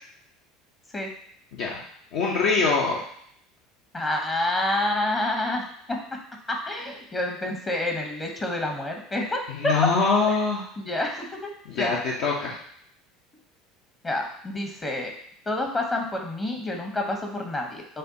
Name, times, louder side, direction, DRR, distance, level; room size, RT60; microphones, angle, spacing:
voice 1, 2.1-3.0 9.5-10.6 11.7-12.6, left 4 dB, 60° left, -3 dB, 0.7 m, -23 dB
voice 2, 3.9-6.0 6.5-9.7 10.3-10.4 10.8-11.5 11.8-12.0 14.0-15.1 15.5-18.0, left 1 dB, 25° left, 2 dB, 0.9 m, -28 dB
6.5 x 2.3 x 2.7 m, 0.67 s
hypercardioid pair, 75°, 0 cm